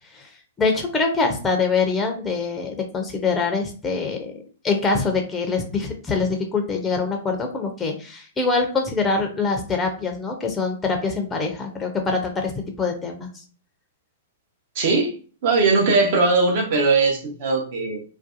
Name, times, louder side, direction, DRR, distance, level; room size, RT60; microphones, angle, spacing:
voice 1, 0.6-4.3 4.6-12.5 12.8-13.4, left 4 dB, 15° left, 3 dB, 0.5 m, -24 dB
voice 2, 14.7-15.1 15.4-18.0, right 3 dB, 50° right, 1 dB, 0.8 m, -19 dB
2.5 x 2.2 x 2.4 m, 0.40 s
figure-of-eight pair, 110°, 0 cm